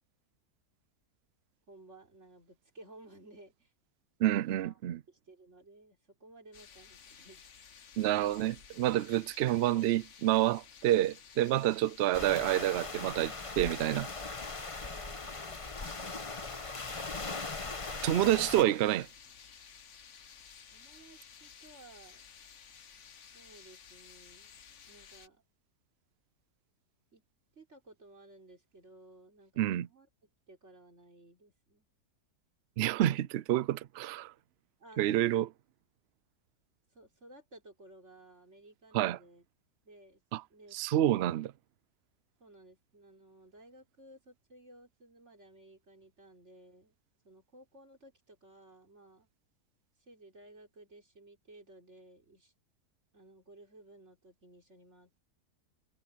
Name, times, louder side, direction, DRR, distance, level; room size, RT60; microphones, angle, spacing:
voice 1, 1.7-3.7 4.3-4.8 5.1-7.7 14.8-16.0 20.7-22.2 23.3-24.5 24.9-25.4 27.1-27.2 27.6-30.1 30.5-31.9 34.8-35.4 36.9-39.4 39.8-40.2 40.5-40.8 42.4-47.0 47.2-49.3 50.0-52.5 53.1-55.2, right 2 dB, 45° right, 4.7 m, -56 dB
voice 2, 4.2-5.0 8.0-14.1 18.0-19.1 29.6-29.9 32.8-34.3 35.0-35.5 38.9-39.2 40.3-40.4 40.7-41.5, right 13 dB, 90° right, 0.5 m, -28 dB
sound 1, 6.5-25.3, left 7 dB, 50° left, 1.3 m, -55 dB
sound 2, 12.1-18.6, left 3 dB, 25° left, 1.0 m, -39 dB
omnidirectional pair, 1.7 m